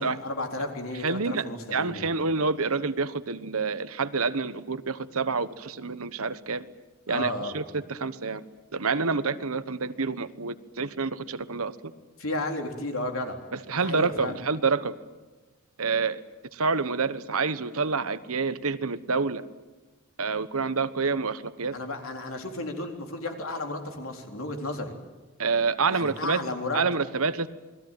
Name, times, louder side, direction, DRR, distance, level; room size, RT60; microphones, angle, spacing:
voice 1, 0.0-2.1 7.1-7.5 12.2-13.4 13.8-14.3 21.7-25.0 25.9-26.8, left 2 dB, 70° left, 3 dB, 3.8 m, -33 dB
voice 2, 1.0-6.7 7.1-8.4 8.7-11.8 13.5-14.9 15.8-16.2 16.5-19.4 20.2-21.8 25.4-26.4 26.7-27.5, right 4 dB, 75° right, 13 dB, 1.2 m, -28 dB
28.0 x 21.0 x 9.2 m, 1.2 s
head